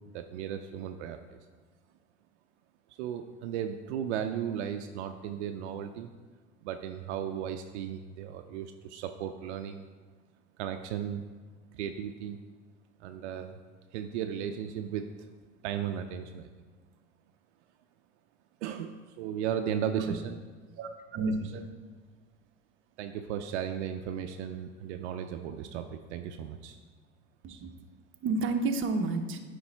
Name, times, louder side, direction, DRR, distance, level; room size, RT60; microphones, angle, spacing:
voice 1, 0.1-1.4 3.0-6.1 6.6-9.8 10.6-11.2 11.7-12.4 13.0-13.6 13.9-15.3 15.6-16.5 18.6-20.4 23.0-26.8, right 9 dB, 70° right, 7 dB, 0.5 m, -35 dB
voice 2, 20.8-21.7 27.4-27.7 28.2-29.4, right 3 dB, 35° right, 6 dB, 0.7 m, -31 dB
9.5 x 3.3 x 4.4 m, 1.4 s
hypercardioid pair, 75°, 36 cm